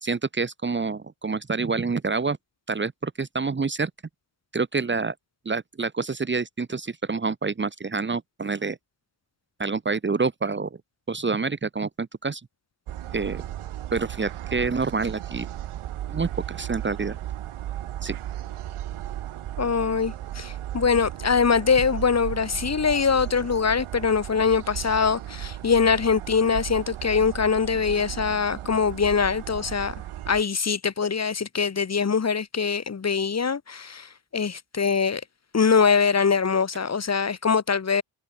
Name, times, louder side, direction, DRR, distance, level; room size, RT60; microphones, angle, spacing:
voice 1, 0.0-2.4 2.7-3.9 4.5-5.2 5.5-8.8 9.6-10.8 11.1-12.4 13.1-13.4 13.9-15.5 16.1-17.2 18.0-18.2, right 4 dB, 20° right, 1.8 m, -27 dB
sound 1, 12.9-30.4, right 12 dB, 80° right, 3.2 m, -35 dB
voice 2, 19.6-29.9 30.3-35.2 35.5-38.0, left 5 dB, 30° left, 3.2 m, -23 dB
wide cardioid pair, 160°, 50 cm